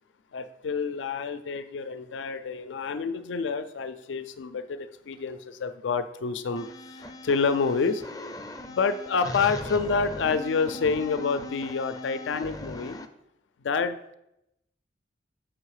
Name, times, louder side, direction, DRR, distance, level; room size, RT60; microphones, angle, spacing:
voice 1, 0.3-8.0 8.7-13.0 13.6-14.1, left 5 dB, 85° left, 11 dB, 0.4 m, -28 dB
sound 1, 6.6-13.1, left 1 dB, 20° left, 0.4 m, -39 dB
6.1 x 5.5 x 4.8 m, 0.83 s
head